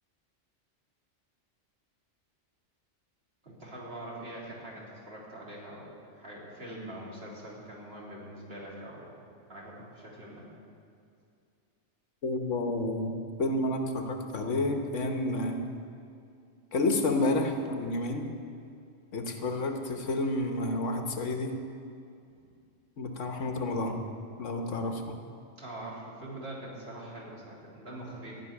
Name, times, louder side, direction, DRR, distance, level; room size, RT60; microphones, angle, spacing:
voice 1, 3.4-9.1 9.5-10.5 22.3-22.4 25.6-28.4, right 1 dB, 55° right, -5 dB, 3.3 m, -43 dB
voice 2, 12.2-15.6 16.7-18.2 19.1-21.5 23.0-24.0 24.4-25.2, left 2 dB, 80° left, 4 dB, 1.5 m, -30 dB
14.0 x 6.3 x 9.8 m, 2.4 s
omnidirectional pair, 1.2 m